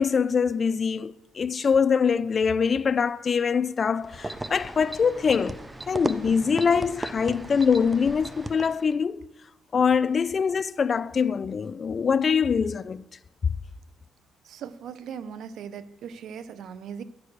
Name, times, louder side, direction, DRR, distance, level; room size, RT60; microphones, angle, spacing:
voice 1, 0.0-9.2 9.7-13.0, left 6 dB, 45° left, 0.3 m, -24 dB
sound 1, 4.0-8.9, right 1 dB, 15° right, 0.5 m, -36 dB
voice 2, 14.4-17.0, right 7 dB, 75° right, 0.5 m, -39 dB
11.0 x 4.7 x 6.5 m
cardioid pair, 90°, 0 cm